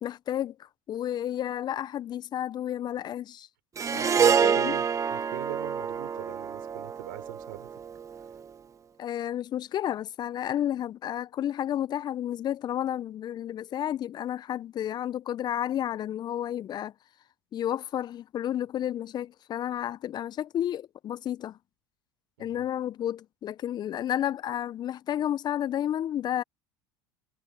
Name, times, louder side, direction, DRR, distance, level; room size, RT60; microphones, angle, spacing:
voice 1, 0.0-3.5 3.9-4.2 4.4-4.8 9.0-16.9 17.5-21.6 22.4-26.4, left 11 dB, 40° left, 1.1 m, -31 dB
Harp, 3.8-8.2, right 7 dB, 30° right, 1.8 m, -27 dB
voice 2, 3.9-7.7 8.2-8.3 22.4-22.7, right 18 dB, 70° right, 5.5 m, -43 dB
hypercardioid pair, 75°, 11 cm